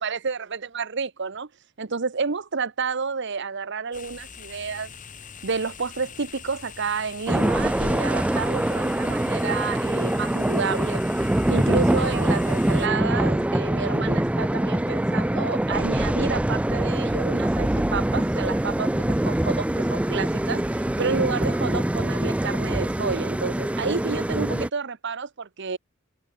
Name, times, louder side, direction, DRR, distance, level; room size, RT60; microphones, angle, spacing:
voice 1, 0.0-1.5 1.8-4.9 5.4-11.0 11.5-25.8, right 5 dB, 55° right, 0.9 m, -30 dB
sound 1, 3.9-12.9, left 7 dB, 35° left, 2.6 m, -43 dB
sound 2, 7.3-24.7, right 1 dB, 5° right, 0.3 m, -24 dB
sound 3, 7.8-16.5, left 1 dB, 65° left, 2.9 m, -47 dB
head